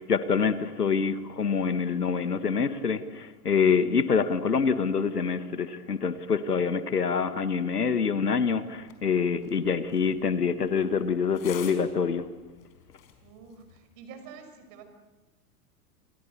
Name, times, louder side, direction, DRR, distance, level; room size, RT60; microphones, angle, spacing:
voice 1, 0.0-12.3, left 6 dB, 85° left, 12 dB, 1.6 m, -26 dB
sound 1, 8.7-13.8, left 9 dB, 60° left, 4.9 m, -50 dB
voice 2, 13.2-14.8, right 6 dB, 45° right, 7 dB, 5.9 m, -47 dB
29.5 x 24.0 x 6.9 m, 1.2 s
figure-of-eight pair, 90°, 45 cm